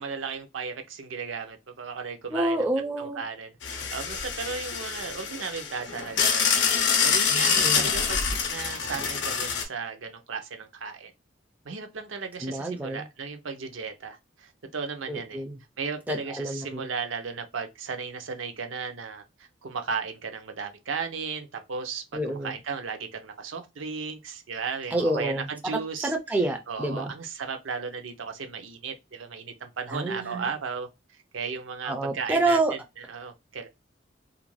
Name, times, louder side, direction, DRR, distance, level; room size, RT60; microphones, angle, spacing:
voice 1, 0.0-2.7 3.0-11.1 11.6-15.4 15.8-19.2 19.6-26.1 26.7-30.9 31.3-32.6 33.0-33.7, right 5 dB, 75° right, 0.5 m, -35 dB
voice 2, 2.3-3.2 7.3-7.9 12.4-13.0 15.1-15.6 16.1-16.9 22.1-22.6 24.9-25.5 26.0-27.1 29.9-30.5 31.8-32.7, right 2 dB, 10° right, 0.3 m, -28 dB
sound 1, 3.6-9.6, left 6 dB, 65° left, 0.6 m, -26 dB
2.4 x 2.1 x 3.1 m
head